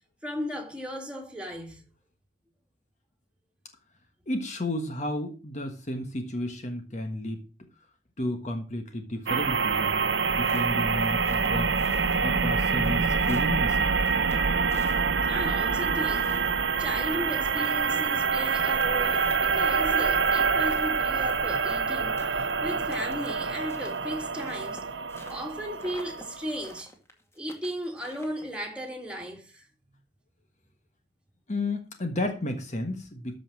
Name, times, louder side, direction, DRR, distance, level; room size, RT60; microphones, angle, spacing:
voice 1, 0.2-1.8 15.2-16.5 16.8-24.8 25.3-26.9 27.3-29.7, equal, 5° right, 2.4 m, -36 dB
voice 2, 4.3-7.4 8.2-11.7 12.2-13.9 31.5-33.4, left 1 dB, 40° left, 1.4 m, -32 dB
sound 1, 9.3-26.8, right 5 dB, 90° right, 0.9 m, -26 dB
A gaitful walk, 10.2-12.5 12.8-15.4 15.7-18.0 18.3-18.4 18.5-21.9 22.2-25.5 25.8-26.3 26.6-28.6, left 1 dB, 15° left, 2.1 m, -49 dB
13.5 x 5.5 x 6.2 m
head